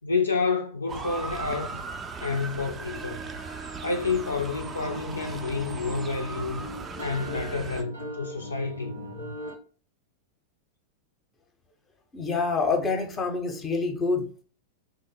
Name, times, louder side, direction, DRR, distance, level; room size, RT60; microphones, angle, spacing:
voice 1, 0.0-1.8 2.2-3.4 3.8-6.7 7.0-9.3, left 4 dB, 75° left, 0.3 m, -29 dB
Motor vehicle (road) / Siren, 0.9-7.8, right 4 dB, 20° right, 0.4 m, -38 dB
Wind instrument woodwind instrument, 2.9-7.0, right 2 dB, 60° right, 0.7 m, -44 dB
sound 1, 4.5-9.5, left 1 dB, 85° right, 1.3 m, -40 dB
voice 2, 12.1-14.4, left 4 dB, 20° left, 0.6 m, -27 dB
3.1 x 2.0 x 3.9 m
figure-of-eight pair, 90°, 0 cm